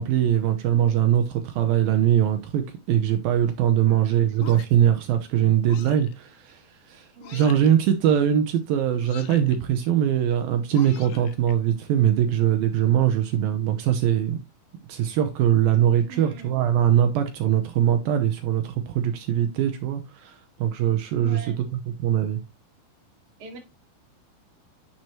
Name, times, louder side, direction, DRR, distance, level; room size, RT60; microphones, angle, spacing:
voice 1, 0.0-14.4 14.9-22.4, right 10 dB, 75° right, 2.6 m, -22 dB
sound 1, 4.4-4.9 5.7-6.1 7.2-7.8 9.0-9.6 10.7-11.5, left 11 dB, 90° left, 3.1 m, -43 dB
voice 2, 7.1-7.6 16.1-16.5 21.2-21.6 23.4-23.6, right 2 dB, 30° right, 2.3 m, -42 dB
10.5 x 6.1 x 3.1 m
omnidirectional pair, 4.4 m